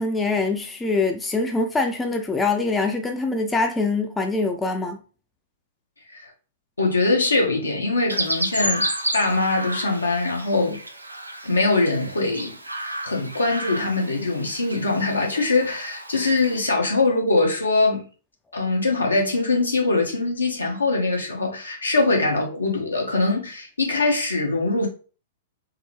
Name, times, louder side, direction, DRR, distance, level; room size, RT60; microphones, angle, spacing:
voice 1, 0.0-5.0, left 3 dB, 10° left, 0.4 m, -24 dB
voice 2, 6.8-8.9 9.1-10.8 11.4-12.6 12.8-18.1 18.5-24.9, left 3 dB, 75° left, 1.0 m, -22 dB
Chirp tweet, 8.1-16.6, right 1 dB, 80° right, 0.4 m, -31 dB
3.7 x 2.0 x 3.1 m
figure-of-eight pair, 105°, 0 cm